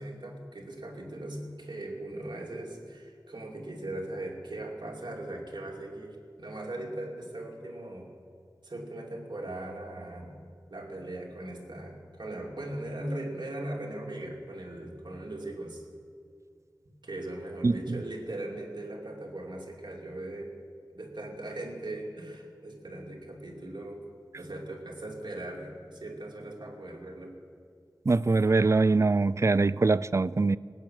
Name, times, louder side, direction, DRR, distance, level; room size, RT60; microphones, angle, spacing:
voice 1, 0.0-8.1 8.6-10.4 10.7-15.8 17.0-20.6 20.9-24.0 24.3-27.3, right 1 dB, 75° right, 2.5 m, -39 dB
voice 2, 17.6-18.0 28.1-30.6, right 3 dB, 40° right, 0.3 m, -23 dB
18.5 x 7.6 x 8.9 m
wide cardioid pair, 45°, 8 cm